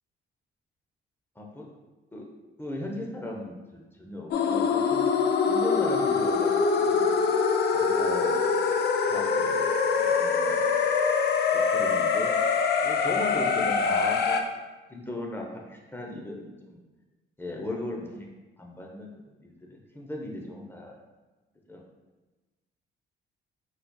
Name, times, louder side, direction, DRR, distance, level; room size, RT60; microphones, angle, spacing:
voice 1, 2.6-7.3 7.7-8.6 9.1-10.8 11.5-12.3 12.8-14.5 14.9-16.8 17.4-18.3 18.6-19.1 19.4-21.0 21.7-21.8, left 1 dB, 10° left, 0 dB, 0.7 m, -37 dB
sound 1, 4.3-14.4, left 5 dB, 55° left, 0.4 m, -24 dB
4.2 x 4.0 x 2.3 m, 1.2 s
cardioid pair, 90°, 20 cm